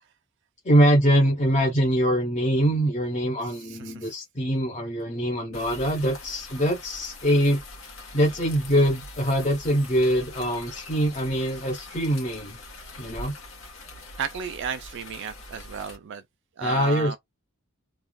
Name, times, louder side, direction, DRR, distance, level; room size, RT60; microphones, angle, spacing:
voice 1, 0.6-7.6 8.1-12.6 13.0-13.3 16.6-17.2, equal, 35° left, 0.8 m, -23 dB
voice 2, 3.4-4.2 14.2-16.2 16.6-17.2, right 6 dB, 60° right, 0.4 m, -33 dB
sound 1, 5.5-16.0, left 2 dB, 80° left, 1.3 m, -43 dB
3.3 x 2.4 x 2.2 m
head